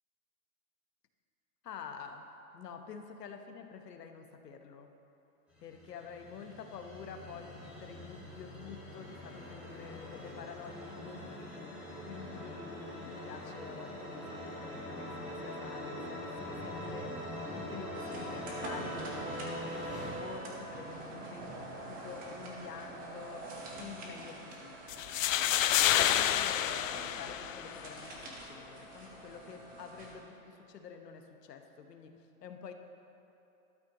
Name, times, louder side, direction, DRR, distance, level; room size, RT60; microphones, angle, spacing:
voice 1, 1.6-4.9 5.6-11.8 12.0-24.8 25.7-32.7, left 6 dB, 90° left, 6 dB, 1.2 m, -48 dB
sound 1, 5.5-20.1, left 1 dB, 5° right, 2.5 m, -43 dB
sound 2, 17.9-30.1, right 2 dB, 20° right, 1.1 m, -45 dB
sound 3, 24.9-27.9, left 11 dB, 55° left, 0.5 m, -29 dB
13.0 x 12.5 x 3.0 m, 2.9 s
hypercardioid pair, 155°, 47 cm